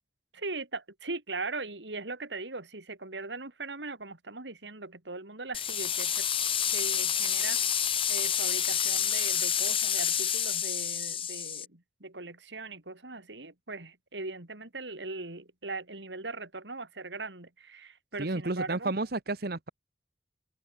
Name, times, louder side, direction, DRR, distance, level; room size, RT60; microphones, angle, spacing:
voice 1, 0.3-6.3 6.7-7.7 8.1-18.9, right 3 dB, 85° right, 3.5 m, -40 dB
sound 1, 5.5-11.7, left 9 dB, 30° left, 1.4 m, -28 dB
voice 2, 18.2-19.7, right 2 dB, 60° right, 1.3 m, -31 dB
open air
head